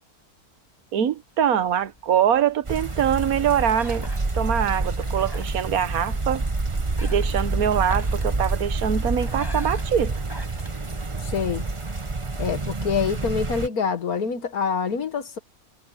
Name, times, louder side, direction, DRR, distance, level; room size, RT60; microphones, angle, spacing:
voice 1, 0.9-4.1 4.3-6.4 7.0-10.1, right 9 dB, 70° right, 1.5 m, -23 dB
sound 1, 1.3-11.6, left 1 dB, 15° left, 6.4 m, -45 dB
sound 2, 2.7-13.7, right 3 dB, 20° right, 1.1 m, -28 dB
voice 2, 11.2-11.7 12.4-15.4, left 6 dB, 70° left, 1.8 m, -26 dB
omnidirectional pair, 1.6 m